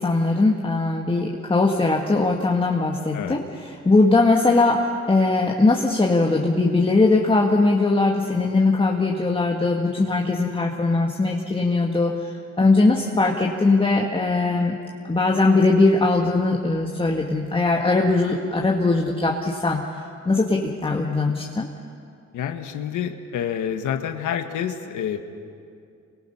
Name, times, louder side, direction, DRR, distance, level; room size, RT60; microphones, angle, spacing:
voice 1, 0.0-14.7 15.0-19.8 20.3-21.7, left 3 dB, 15° left, -1 dB, 1.9 m, -20 dB
voice 2, 22.3-25.2, left 9 dB, 80° left, 5 dB, 1.7 m, -28 dB
27.5 x 24.0 x 5.7 m, 2.4 s
cardioid pair, 90°, 30 cm